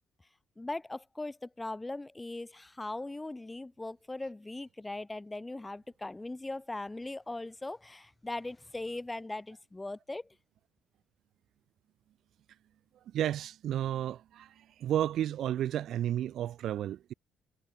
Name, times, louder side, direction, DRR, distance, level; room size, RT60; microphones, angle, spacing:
voice 1, 0.6-10.4, left 2 dB, 10° left, 5.5 m, -39 dB
voice 2, 13.1-14.5 14.8-17.1, right 11 dB, 60° right, 1.6 m, -32 dB
cardioid pair, 155°, 0 cm